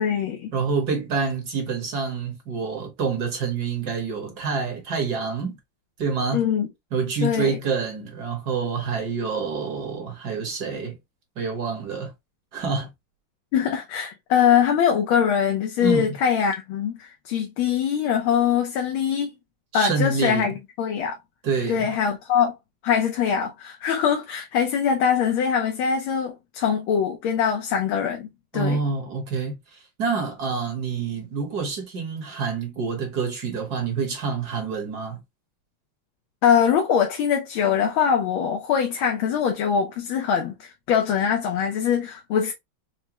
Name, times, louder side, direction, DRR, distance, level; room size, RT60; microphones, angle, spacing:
voice 1, 0.0-0.5 6.3-6.7 7.2-7.6 13.5-19.3 19.7-21.2 21.7-22.6 22.8-28.8 36.4-42.5, left 8 dB, 75° left, 1.5 m, -23 dB
voice 2, 0.5-5.6 6.0-6.4 6.9-11.0 11.4-12.1 12.5-12.9 15.8-16.2 19.7-20.5 21.4-21.9 28.5-35.2, right 5 dB, 55° right, 1.4 m, -27 dB
4.8 x 2.1 x 2.8 m
omnidirectional pair, 2.3 m